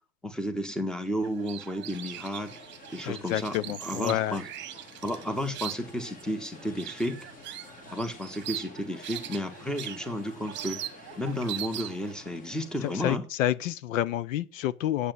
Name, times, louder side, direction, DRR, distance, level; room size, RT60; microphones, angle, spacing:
voice 1, 0.2-2.5 2.9-4.4 5.0-7.3 7.9-10.8 11.2-13.2, equal, ahead, 1.3 m, -32 dB
sound 1, 1.2-12.1, right 12 dB, 25° right, 1.4 m, -41 dB
sound 2, 1.9-13.2, left 3 dB, 20° left, 1.8 m, -50 dB
voice 2, 3.0-4.4 12.8-15.1, left 12 dB, 65° left, 0.9 m, -29 dB
8.5 x 8.1 x 9.1 m
supercardioid pair, 150°, 42 cm